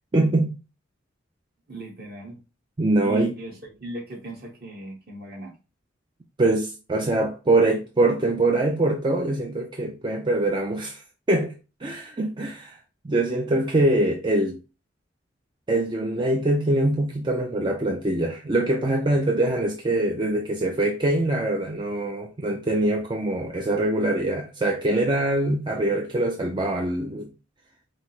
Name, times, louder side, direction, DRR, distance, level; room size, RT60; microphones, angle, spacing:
voice 1, 0.1-0.6 2.8-3.3 6.4-11.0 11.3-11.5 11.8-12.8 13.0-14.6 15.7-27.3, right 2 dB, 25° right, 0.4 m, -23 dB
voice 2, 1.7-2.4 3.0-5.6, right 2 dB, 50° right, 1.3 m, -38 dB
4.7 x 2.0 x 4.2 m
head